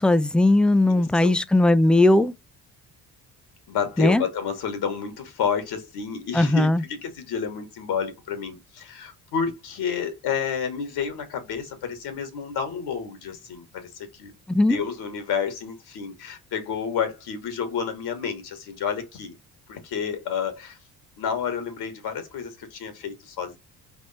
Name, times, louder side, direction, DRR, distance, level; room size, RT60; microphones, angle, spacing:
voice 1, 0.0-2.3 4.0-4.2 6.3-6.8 14.5-14.8, left 2 dB, ahead, 0.4 m, -18 dB
voice 2, 0.8-1.3 3.7-14.3 14.7-19.4 19.7-20.8 21.2-23.6, left 7 dB, 70° left, 1.5 m, -30 dB
3.5 x 3.1 x 4.0 m
supercardioid pair, 60°, 41 cm